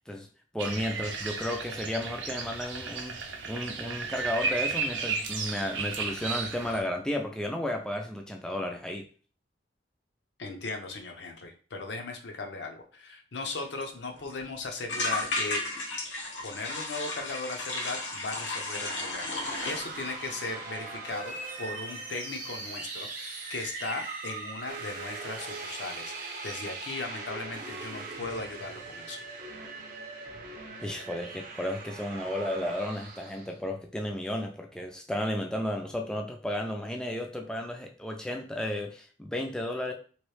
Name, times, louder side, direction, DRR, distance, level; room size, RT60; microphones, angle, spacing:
voice 1, 0.5-9.0 30.8-39.9, left 1 dB, 5° left, 2 dB, 0.3 m, -33 dB
sound 1, 0.6-6.8, right 4 dB, 85° right, 0.6 m, -34 dB
voice 2, 10.4-15.6 16.4-19.4 19.6-29.2, left 3 dB, 70° left, 4 dB, 0.6 m, -37 dB
sound 2, 13.8-13.9 14.2-14.4 14.9-19.8, left 2 dB, 90° left, 1.0 m, -33 dB
sound 3, 19.4-33.5, right 3 dB, 50° right, 0.7 m, -40 dB
3.0 x 2.6 x 3.2 m, 0.40 s
head